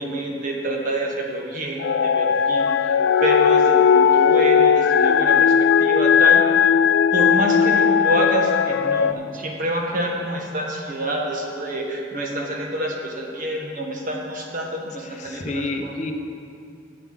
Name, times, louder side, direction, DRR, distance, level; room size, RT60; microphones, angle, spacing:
voice 1, 0.0-5.5 5.8-6.6 7.1-15.9, right 1 dB, 45° right, 0 dB, 1.4 m, -27 dB
sound 1, 1.8-9.1, left 7 dB, 90° left, 0.3 m, -17 dB
voice 2, 15.0-16.1, left 2 dB, 40° left, 5 dB, 0.7 m, -29 dB
8.4 x 7.6 x 7.4 m, 2.4 s
head